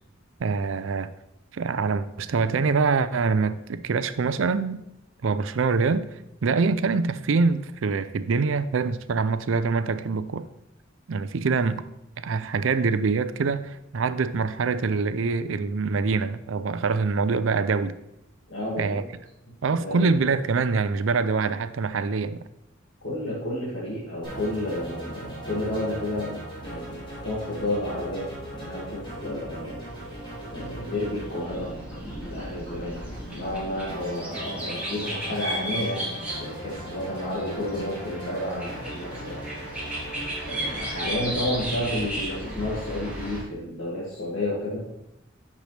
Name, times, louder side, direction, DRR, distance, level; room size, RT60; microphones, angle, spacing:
voice 1, 0.4-1.1 1.5-4.8 5.2-6.1 6.4-10.5 11.1-11.8 12.2-17.9 18.8-19.0 19.6-22.4, right 4 dB, 75° right, 0.5 m, -24 dB
voice 2, 18.5-19.0 19.7-20.1 23.0-29.7 30.5-33.0 33.3-39.4 40.4-44.8, left 1 dB, 70° left, 2.0 m, -31 dB
sound 1, 24.2-43.4, right 1 dB, 25° left, 3.3 m, -38 dB
sound 2, 30.3-30.7 30.9-43.4, right 1 dB, 5° right, 2.5 m, -36 dB
9.2 x 6.6 x 3.3 m
head